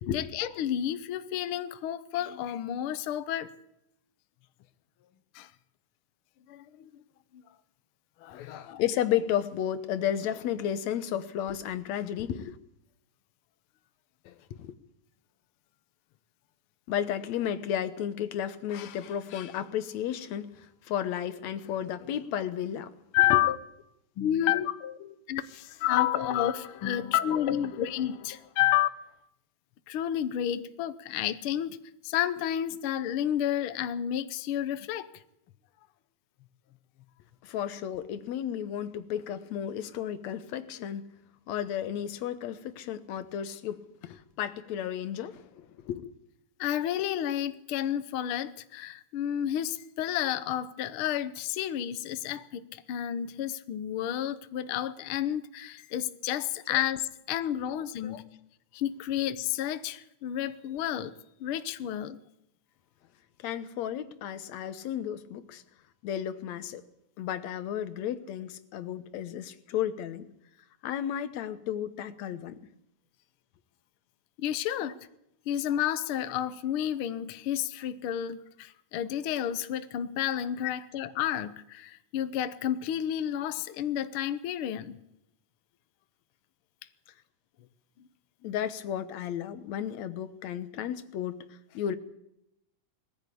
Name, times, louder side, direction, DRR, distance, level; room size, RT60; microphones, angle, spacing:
voice 1, 0.0-3.5 5.3-5.5 6.5-7.0 7.3-7.4 8.2-8.5 23.1-23.6 24.2-28.9 29.9-31.8 32.0-35.1 46.6-58.2 58.7-61.1 61.4-62.2 74.4-75.1 75.5-85.0, left 11 dB, 90° left, 1.1 m, -30 dB
voice 2, 8.3-12.6 14.3-14.7 16.9-22.9 23.3-23.4 37.4-41.1 41.5-46.1 56.7-56.8 58.0-58.2 63.4-65.6 66.0-66.8 67.2-70.3 70.8-72.6 88.4-92.0, left 10 dB, 65° left, 2.0 m, -33 dB
21.5 x 15.0 x 8.5 m
omnidirectional pair, 3.7 m